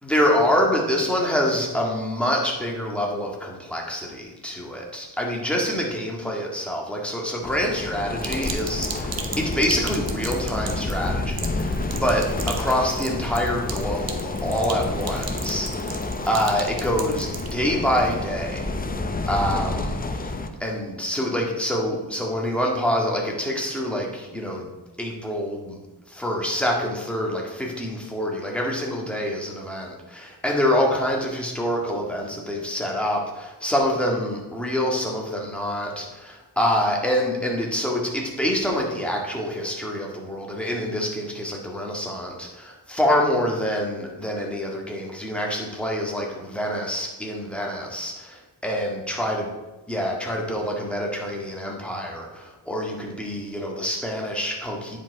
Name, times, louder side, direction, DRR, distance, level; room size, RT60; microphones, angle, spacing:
voice 1, 0.0-15.9 16.2-18.6 19.3-20.3 20.6-24.7 25.0-25.8 26.1-49.5 49.9-55.0, equal, 5° left, -2 dB, 1.8 m, -26 dB
sound 1, 7.4-20.5, left 2 dB, 20° left, 0.6 m, -29 dB
Sink (filling or washing), 8.2-17.5, right 5 dB, 60° right, 1.0 m, -37 dB
9.2 x 5.2 x 4.7 m, 1.1 s
wide cardioid pair, 105°, 41 cm